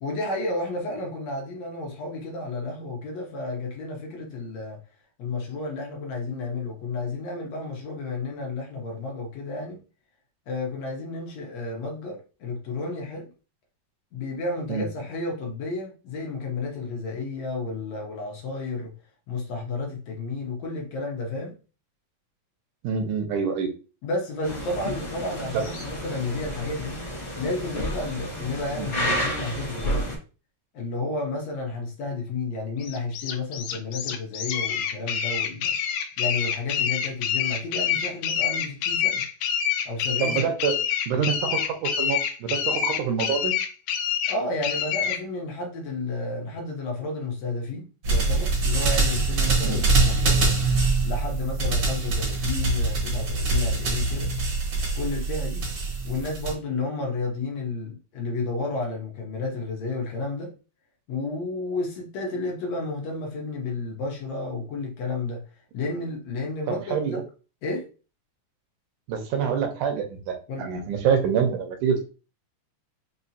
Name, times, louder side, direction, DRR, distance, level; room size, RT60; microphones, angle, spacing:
voice 1, 0.0-4.8 5.2-9.8 10.5-13.3 14.1-18.9 19.3-21.5 24.0-27.0 27.4-30.2 30.7-35.8 36.2-39.2 39.8-40.5 44.3-50.6 51.0-54.3 55.0-55.7 56.0-60.5 61.1-65.4 65.7-67.2 67.6-67.9 70.5-70.7, left 3 dB, 65° left, 2.0 m, -31 dB
voice 2, 22.8-23.7 25.5-25.7 28.8-28.9 40.2-40.8 41.1-43.5 49.6-49.8 66.7-67.2 69.1-72.1, right 6 dB, 80° right, 2.3 m, -26 dB
sound 1, 24.4-30.2, equal, 35° left, 0.6 m, -31 dB
sound 2, 32.8-45.2, left 8 dB, 85° left, 2.1 m, -27 dB
sound 3, 48.0-56.5, right 3 dB, 60° right, 1.1 m, -24 dB
5.6 x 2.8 x 2.7 m
omnidirectional pair, 3.6 m